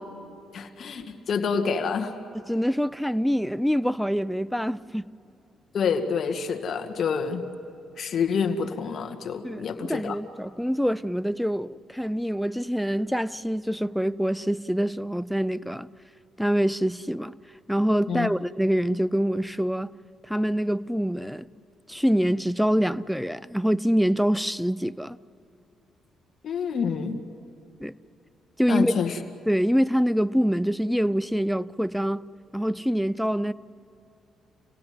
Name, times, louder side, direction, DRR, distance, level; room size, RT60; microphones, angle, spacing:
voice 1, 0.5-2.1 5.7-7.4 8.0-10.2 18.1-18.3 26.4-27.2 28.7-29.1, left 6 dB, 60° left, 2.1 m, -27 dB
voice 2, 2.3-5.0 9.4-15.9 16.4-17.3 17.7-19.9 20.2-21.5 21.9-25.2 27.8-28.0 28.6-28.9 29.5-32.3 32.5-33.5, equal, ahead, 0.6 m, -25 dB
28.0 x 18.0 x 9.6 m
cardioid pair, 90°, 0 cm